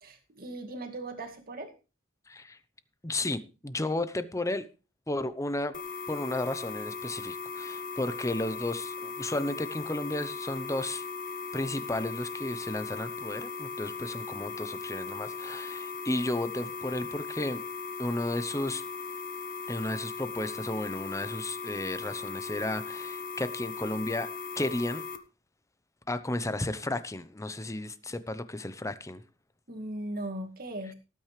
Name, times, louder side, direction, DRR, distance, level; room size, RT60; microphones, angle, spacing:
voice 1, 0.0-1.7 29.7-30.9, right 1 dB, 45° right, 2.3 m, -38 dB
voice 2, 2.3-2.6 3.0-4.6 5.1-5.8 6.1-11.0 11.5-17.6 18.0-18.8 19.7-24.3 24.6-25.0 26.1-29.2, left 2 dB, 15° left, 0.8 m, -33 dB
sound 1, 5.7-25.2, left 5 dB, 40° left, 1.2 m, -38 dB
18.5 x 9.0 x 3.3 m
head